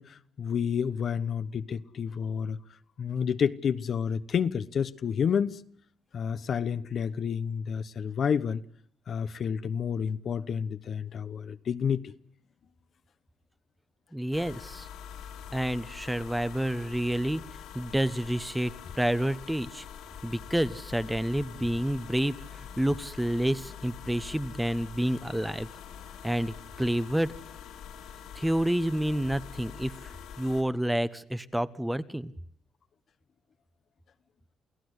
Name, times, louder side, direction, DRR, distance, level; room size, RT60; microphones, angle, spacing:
voice 1, 0.0-2.6 3.0-5.6 6.1-8.6 9.1-12.1, left 7 dB, 55° left, 1.1 m, -30 dB
voice 2, 14.1-14.9 15.5-17.4 17.7-19.8 20.2-25.7 26.2-27.3 28.3-32.3, right 1 dB, 5° right, 1.2 m, -29 dB
sound 1, 14.3-30.6, left 8 dB, 90° left, 4.9 m, -45 dB
28.5 x 16.5 x 8.2 m
cardioid pair, 90°, 0 cm